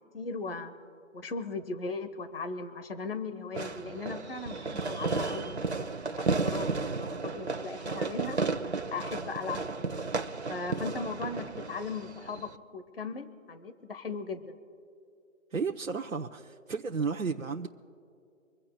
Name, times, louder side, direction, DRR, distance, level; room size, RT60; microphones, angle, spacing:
voice 1, 0.1-0.7 1.1-5.7 6.2-8.4 8.9-9.9 10.5-14.6, left 4 dB, 45° left, 10 dB, 1.1 m, -38 dB
Fireworks, 3.5-12.6, right 3 dB, 55° right, 1.1 m, -33 dB
voice 2, 15.5-17.7, right 5 dB, 85° right, 1 dB, 1.1 m, -33 dB
26.0 x 16.0 x 2.3 m, 2.5 s
figure-of-eight pair, 170°, 40 cm